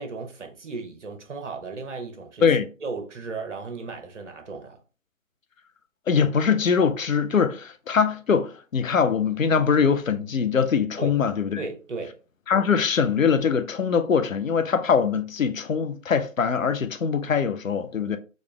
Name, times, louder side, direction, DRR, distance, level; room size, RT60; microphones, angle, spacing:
voice 1, 0.0-2.4 2.8-4.8 11.0-11.2 11.6-12.2, right 4 dB, 60° right, 1.0 m, -35 dB
voice 2, 6.1-11.6 12.5-18.2, left 6 dB, 70° left, 0.7 m, -22 dB
4.2 x 2.5 x 3.2 m
figure-of-eight pair, 145°, 41 cm